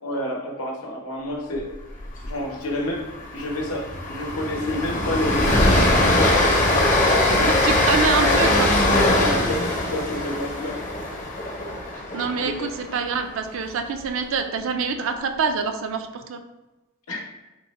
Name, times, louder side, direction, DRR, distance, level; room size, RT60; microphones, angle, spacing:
voice 1, 0.0-1.7 2.2-3.1 3.3-6.3 7.1-7.8 8.9-10.8 12.3-12.7 17.1-17.2, left 1 dB, 80° left, 0 dB, 0.8 m, -29 dB
Train, 2.0-2.3 2.6-2.7 3.1-13.2, left 1 dB, 35° left, 0.6 m, -21 dB
voice 2, 7.4-8.7 12.1-16.4, right 5 dB, 60° right, 6 dB, 0.4 m, -25 dB
3.7 x 2.1 x 3.9 m, 1.1 s
head